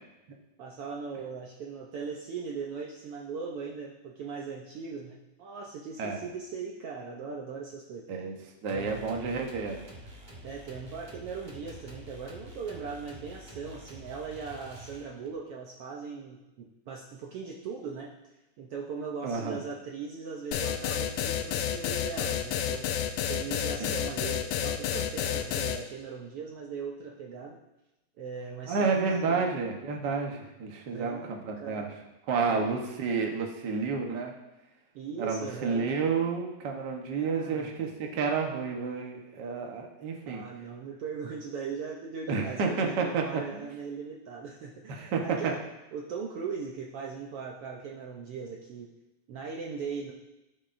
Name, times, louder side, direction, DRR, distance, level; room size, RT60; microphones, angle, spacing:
voice 1, 0.6-8.1 8.7-9.3 10.4-18.1 18.6-22.9 23.3-27.6 28.2-29.5 30.9-31.9 32.4-32.7 34.9-36.0 37.2-37.7 40.3-45.6 45.9-48.9 49.3-50.1, right 5 dB, 90° right, -1 dB, 1.2 m, -39 dB
voice 2, 8.6-9.8 19.2-19.6 23.8-23.9 28.7-31.9 32.3-34.3 35.2-40.4 42.3-43.7 44.9-45.2, right 5 dB, 70° right, 1 dB, 1.0 m, -30 dB
sound 1, 8.7-15.4, right 1 dB, 50° right, 0.5 m, -48 dB
sound 2, 20.5-25.8, left 9 dB, 90° left, 2.2 m, -30 dB
16.5 x 6.2 x 2.6 m, 0.98 s
omnidirectional pair, 3.6 m